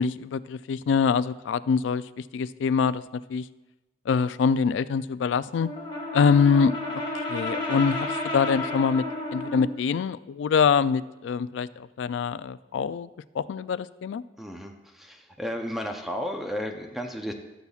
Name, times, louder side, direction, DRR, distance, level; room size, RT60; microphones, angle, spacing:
voice 1, 0.0-3.0 3.3-3.4 4.1-5.7 6.1-7.0 7.3-9.0 9.3-13.1 13.3-14.2, left 6 dB, 90° left, 15 dB, 0.3 m, -24 dB
Brass instrument, 5.6-9.7, left 1 dB, 25° left, 1.6 m, -32 dB
voice 2, 14.4-17.3, equal, ahead, 3 dB, 0.6 m, -33 dB
16.0 x 7.0 x 2.4 m, 1.0 s
head